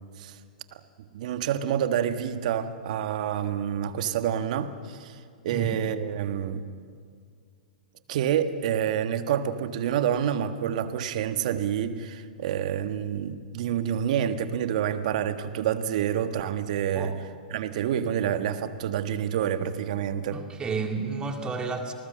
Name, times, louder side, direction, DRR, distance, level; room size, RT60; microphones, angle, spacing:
voice 1, 1.1-6.6 8.1-17.2 17.5-20.4, right 9 dB, 55° right, 9 dB, 1.5 m, -28 dB
voice 2, 20.3-21.9, right 4 dB, 20° right, 4 dB, 2.2 m, -31 dB
27.5 x 20.0 x 7.6 m, 2.2 s
hypercardioid pair, 110°, 5 cm